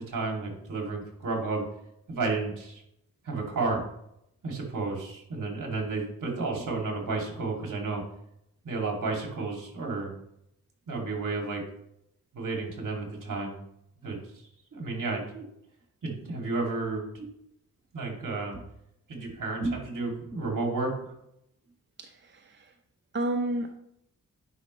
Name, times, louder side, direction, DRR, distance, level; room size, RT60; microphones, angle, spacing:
voice 1, 0.0-1.6 2.1-2.8 3.2-3.8 4.4-8.0 8.6-10.1 10.9-11.6 12.3-13.6 14.0-14.2 14.7-15.5 16.0-17.3 17.9-18.6 19.1-21.1, right 3 dB, 60° right, 0 dB, 2.6 m, -32 dB
voice 2, 22.0-22.7 23.1-23.7, right 1 dB, 35° right, 4 dB, 0.7 m, -31 dB
9.8 x 5.3 x 3.2 m, 0.76 s
cardioid pair, 65°, 35 cm